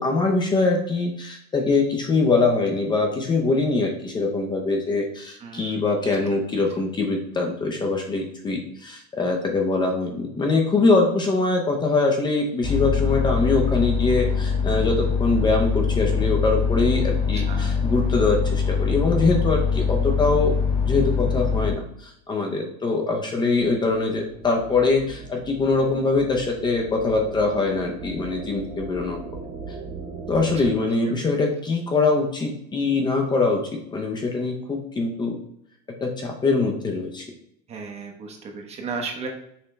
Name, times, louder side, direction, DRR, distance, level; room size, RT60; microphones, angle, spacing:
voice 1, 0.0-20.5 20.8-29.2 30.3-33.6 33.9-35.4 36.0-37.2, left 3 dB, 20° left, 1 dB, 0.8 m, -23 dB
voice 2, 5.4-5.9 17.5-17.7 37.7-39.3, right 4 dB, 30° right, 2 dB, 1.0 m, -34 dB
sound 1, 12.6-21.7, left 5 dB, 45° left, 1.8 m, -23 dB
sound 2, 23.1-30.8, right 4 dB, 75° right, 1.9 m, -39 dB
5.6 x 2.9 x 3.3 m, 0.72 s
supercardioid pair, 125°, 21 cm